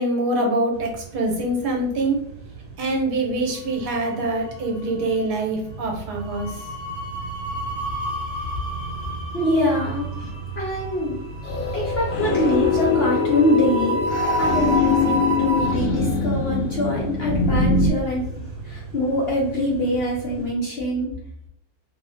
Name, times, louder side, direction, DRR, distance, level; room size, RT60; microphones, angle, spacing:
voice 1, 0.0-2.2 2.8-6.6, right 2 dB, 75° right, 1 dB, 1.3 m, -24 dB
sound 1, 0.7-20.5, right 3 dB, 45° right, 1.1 m, -37 dB
sound 2, 3.7-4.5 4.7-5.0 6.2-15.7, right 2 dB, 45° left, 1.3 m, -30 dB
voice 2, 9.3-10.3 10.6-11.2 11.7-21.1, left 1 dB, 60° left, -3 dB, 0.6 m, -24 dB
sound 3, 11.4-17.9, left 4 dB, 90° left, 1.2 m, -22 dB
3.0 x 2.9 x 2.5 m, 0.74 s
omnidirectional pair, 1.8 m